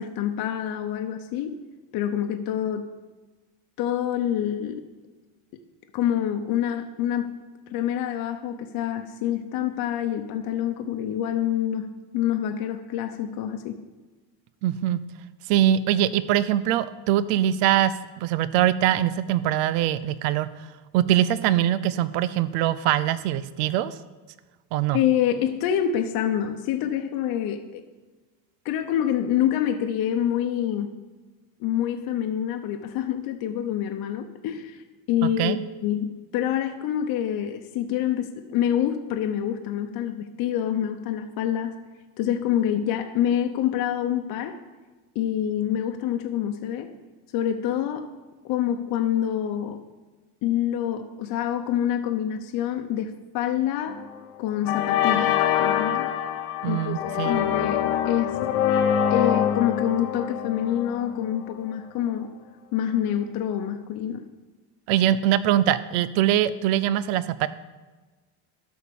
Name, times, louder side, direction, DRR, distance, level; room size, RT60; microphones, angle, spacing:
voice 1, 0.0-1.6 1.9-2.9 3.8-4.9 5.9-7.4 7.7-13.8 24.9-27.8 28.6-30.9 31.6-41.8 42.2-44.6 45.1-46.9 47.3-48.1 48.4-49.8 50.4-54.0 54.4-56.1 56.6-58.4 59.1-62.3 62.7-64.2, left 10 dB, 55° left, 5 dB, 0.8 m, -26 dB
voice 2, 14.6-15.0 15.5-17.9 18.2-20.5 20.9-23.9 24.7-25.0 35.4-35.6 56.6-57.4 64.9-67.5, right 12 dB, 85° right, 15 dB, 0.6 m, -22 dB
sound 1, 53.9-54.2 54.7-61.5, left 9 dB, 85° left, 1.0 m, -25 dB
12.5 x 4.5 x 6.9 m, 1.2 s
cardioid pair, 155°, 42 cm